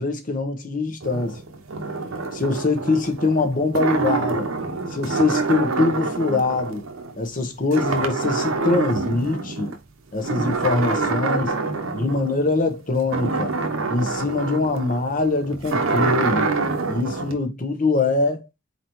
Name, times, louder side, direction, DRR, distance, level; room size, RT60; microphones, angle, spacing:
voice 1, 0.0-1.4 2.3-4.5 4.9-6.8 7.2-9.7 10.1-11.6 11.9-13.6 13.9-16.5 16.9-18.5, left 3 dB, 40° left, 0.8 m, -23 dB
sound 1, 1.0-7.4 7.7-9.8 10.2-17.3, right 3 dB, 75° right, 0.8 m, -26 dB
4.4 x 4.0 x 3.0 m
head